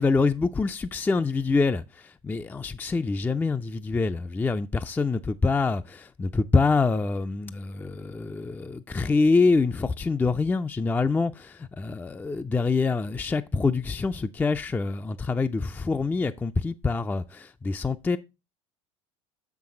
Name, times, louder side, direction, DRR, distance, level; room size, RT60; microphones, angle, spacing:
voice 1, 0.0-1.8 2.2-18.2, left 4 dB, 10° left, 0.4 m, -25 dB
7.0 x 5.9 x 3.7 m
hypercardioid pair, 75°, 16 cm